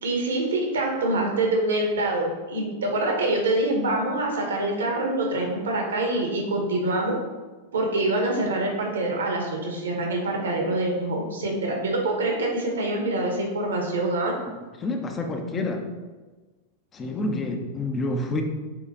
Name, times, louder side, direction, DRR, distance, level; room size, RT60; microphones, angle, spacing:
voice 1, 0.0-7.1 7.7-14.3, right 2 dB, 65° right, 1 dB, 1.4 m, -25 dB
voice 2, 14.5-15.9 16.9-18.4, left 2 dB, 25° left, 4 dB, 0.9 m, -28 dB
7.5 x 3.3 x 4.0 m, 1.3 s
figure-of-eight pair, 90°, 0 cm